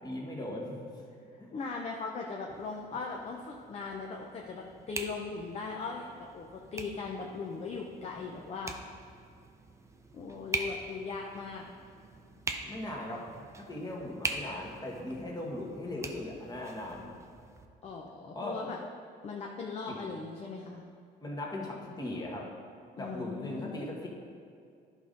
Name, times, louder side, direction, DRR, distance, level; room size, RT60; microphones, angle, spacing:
voice 1, 0.0-0.9 1.4-1.5 12.6-13.3 13.6-17.1 18.3-18.6 19.9-20.1 21.2-22.5 23.0-24.1, left 1 dB, 20° left, -2 dB, 1.5 m, -38 dB
voice 2, 1.3-8.8 10.1-11.6 17.8-18.8 19.2-20.8 23.0-23.7, left 4 dB, 40° left, 0 dB, 0.7 m, -39 dB
sound 1, 2.5-17.7, right 3 dB, 15° right, 0.6 m, -43 dB
11.0 x 5.3 x 3.8 m, 2.3 s
cardioid pair, 110°, 17 cm